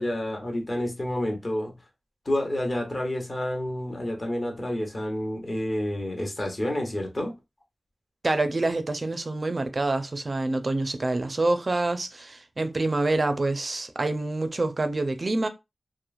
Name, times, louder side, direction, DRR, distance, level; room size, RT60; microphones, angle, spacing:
voice 1, 0.0-1.8 2.3-7.3, left 1 dB, 40° left, 0.9 m, -29 dB
voice 2, 8.2-15.5, right 2 dB, 45° right, 0.4 m, -26 dB
3.0 x 2.0 x 2.4 m
wide cardioid pair, 65°, 0 cm